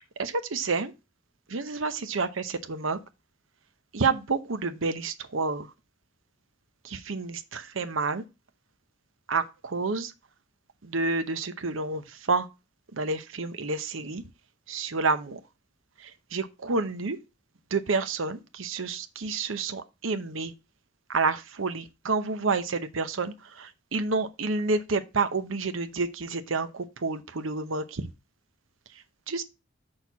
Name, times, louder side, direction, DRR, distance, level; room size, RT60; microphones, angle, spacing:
voice 1, 0.2-0.9 1.5-2.3 2.7-3.0 3.9-5.7 6.8-8.2 9.3-10.1 10.8-12.0 12.3-12.5 12.9-14.2 14.7-15.4 16.3-17.2 17.7-20.5 21.1-28.1 29.3-29.4, right 4 dB, 80° right, 0.8 m, -29 dB
6.4 x 4.4 x 5.7 m
head